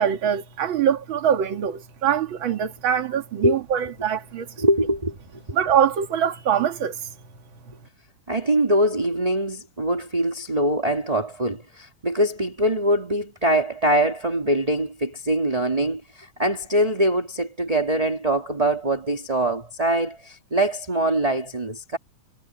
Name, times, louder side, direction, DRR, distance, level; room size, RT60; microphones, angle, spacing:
voice 1, 0.0-4.5 5.5-7.0, right 9 dB, 45° right, 1.8 m, -23 dB
voice 2, 4.6-5.1 8.3-22.0, right 1 dB, 10° right, 2.0 m, -23 dB
omnidirectional pair, 4.4 m